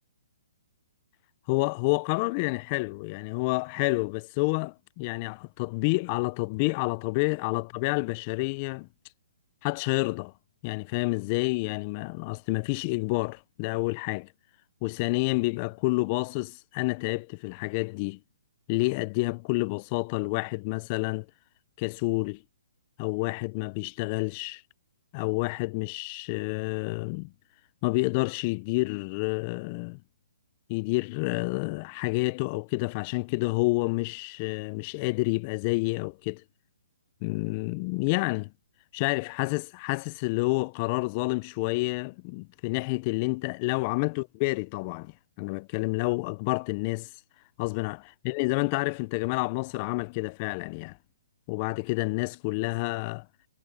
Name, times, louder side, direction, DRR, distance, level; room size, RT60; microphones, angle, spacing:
voice 1, 1.5-8.9 9.6-10.3 10.6-14.3 14.8-18.2 18.7-21.3 21.8-22.4 23.0-24.6 25.1-27.3 27.8-30.0 30.7-36.4 37.2-38.5 38.9-45.1 45.4-47.1 47.6-51.0 51.5-53.2, left 26 dB, 35° left, 0.6 m, -29 dB
hypercardioid pair, 140°, 0 cm